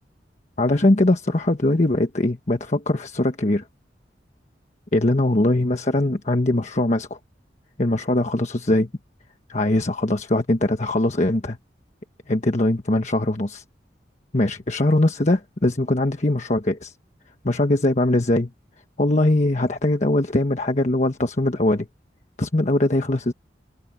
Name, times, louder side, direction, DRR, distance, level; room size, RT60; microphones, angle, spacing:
voice 1, 0.6-3.6 4.9-7.2 7.8-8.9 9.5-11.6 12.3-13.6 14.3-16.9 17.4-18.5 19.0-21.9 22.4-23.3, left 1 dB, 40° left, 1.2 m, -21 dB
open air
head